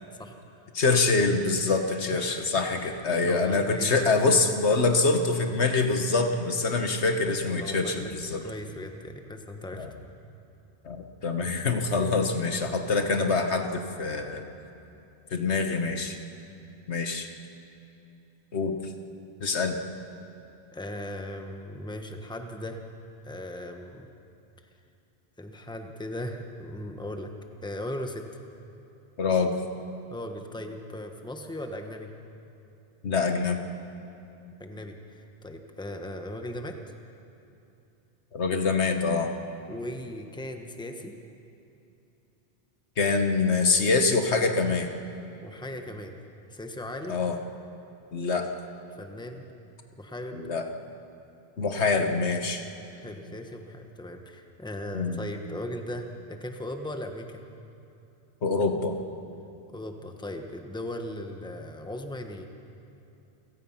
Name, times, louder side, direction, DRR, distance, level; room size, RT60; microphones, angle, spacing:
voice 1, 0.2-0.6 2.1-2.5 2.8-2.9 3.2-4.1 7.5-8.1 8.4-9.9 20.7-22.8 23.2-24.1 25.4-27.3 27.6-28.3 30.1-32.1 34.6-36.9 39.7-41.2 45.4-46.2 46.5-47.2 48.9-49.4 50.0-50.4 52.9-57.4 59.7-62.4, left 1 dB, 5° left, 5 dB, 1.2 m, -38 dB
voice 2, 0.7-8.4 9.8-9.9 10.8-14.5 15.3-16.2 16.9-17.3 18.5-18.8 19.4-19.8 29.2-29.5 33.0-33.6 38.3-39.3 43.0-44.9 47.1-47.4 48.1-48.5 50.3-50.6 51.6-52.6 54.9-55.2 58.4-59.0, left 3 dB, 70° left, 5 dB, 1.6 m, -25 dB
29.0 x 17.0 x 5.8 m, 2.8 s
omnidirectional pair, 1.2 m